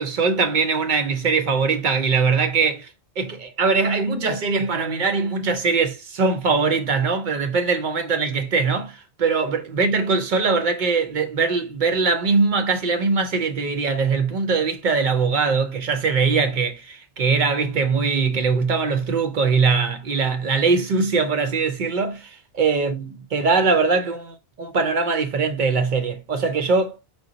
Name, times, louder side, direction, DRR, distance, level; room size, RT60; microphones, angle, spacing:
voice 1, 0.0-2.9 3.2-27.0, right 4 dB, 55° right, 0.6 m, -21 dB
4.8 x 2.1 x 3.7 m
omnidirectional pair, 1.1 m